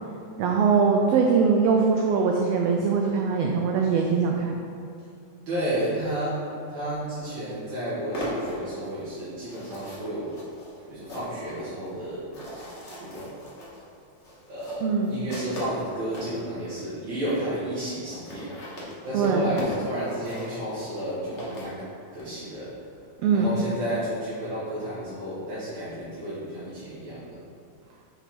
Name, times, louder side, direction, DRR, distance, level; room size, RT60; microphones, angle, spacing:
voice 1, 0.4-4.6 14.8-15.2 19.1-19.4 23.2-23.5, right 5 dB, 85° right, 1 dB, 1.4 m, -22 dB
voice 2, 5.5-10.3 10.9-12.2 13.0-13.3 14.5-18.5 19.0-21.8 22.1-22.7 23.3-27.4, right 1 dB, 70° right, -12 dB, 2.7 m, -32 dB
sound 1, 7.7-16.4 17.0-17.1 17.3-17.4 17.6-17.7 17.9-22.3, left 1 dB, 65° left, 0.6 m, -39 dB
5.4 x 4.5 x 4.1 m, 2.6 s
omnidirectional pair, 3.3 m